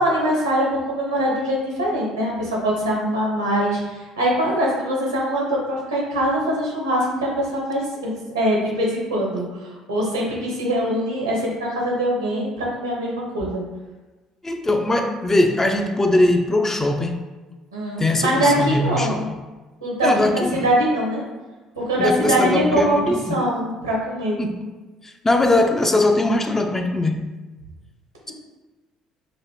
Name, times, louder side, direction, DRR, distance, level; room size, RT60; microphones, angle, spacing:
voice 1, 0.0-13.6 17.7-19.3 19.8-21.2 21.8-24.4, right 1 dB, 85° right, -3 dB, 1.1 m, -23 dB
voice 2, 14.4-17.2 18.0-19.3 20.0-20.7 22.0-23.4 24.4-24.7 25.0-27.3, left 2 dB, 15° left, 4 dB, 0.5 m, -21 dB
5.1 x 2.6 x 3.1 m, 1.2 s
figure-of-eight pair, 50°, 2 cm